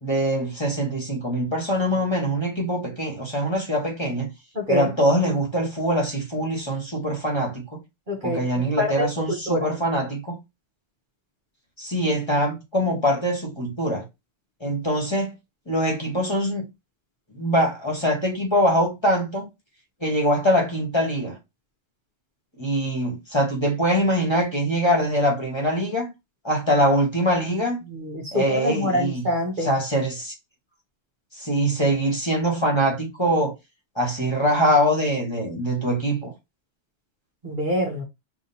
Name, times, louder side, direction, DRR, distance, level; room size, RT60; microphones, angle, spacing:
voice 1, 0.0-4.3 4.7-7.8 8.2-10.4 11.8-14.0 14.6-15.3 15.7-16.6 17.4-19.5 20.0-21.4 22.6-26.1 26.4-27.8 28.3-29.2 29.6-30.3 31.3-33.5 33.9-36.3, equal, 25° left, 1.3 m, -23 dB
voice 2, 4.5-4.9 8.1-9.7 27.8-29.7 37.4-38.0, left 1 dB, 45° right, 1.2 m, -26 dB
3.6 x 2.7 x 4.2 m
omnidirectional pair, 1.2 m